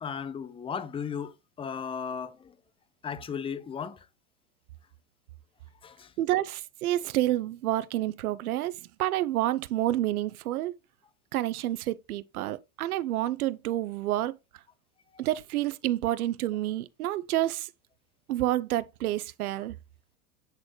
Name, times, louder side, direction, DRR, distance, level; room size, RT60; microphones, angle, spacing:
voice 1, 0.0-2.5 3.0-4.1 5.8-6.1 15.1-15.2, left 7 dB, 15° left, 0.5 m, -36 dB
voice 2, 6.2-8.7 9.0-10.7 11.3-14.3 15.2-17.7 18.3-19.8, right 14 dB, 85° right, 0.6 m, -29 dB
7.9 x 4.1 x 3.1 m
hypercardioid pair, 95°, 43 cm